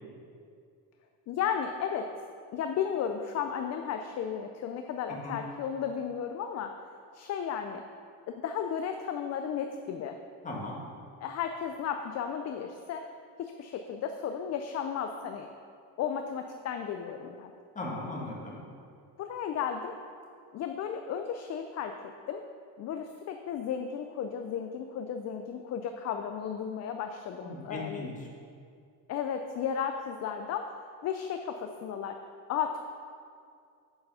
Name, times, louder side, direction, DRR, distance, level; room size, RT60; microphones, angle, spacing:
voice 1, 1.3-2.1 2.5-6.7 7.1-7.8 8.3-10.2 11.2-13.0 13.4-15.5 16.0-17.5 19.2-19.9 20.5-21.9 22.3-22.4 22.8-28.1 29.1-30.6 31.0-32.2 32.5-32.8, left 8 dB, 40° left, 6 dB, 0.4 m, -34 dB
voice 2, 10.4-10.8 17.7-18.6 27.4-28.1, left 2 dB, 20° left, -3 dB, 1.8 m, -37 dB
7.9 x 6.7 x 5.6 m, 2.3 s
cardioid pair, 140°, 42 cm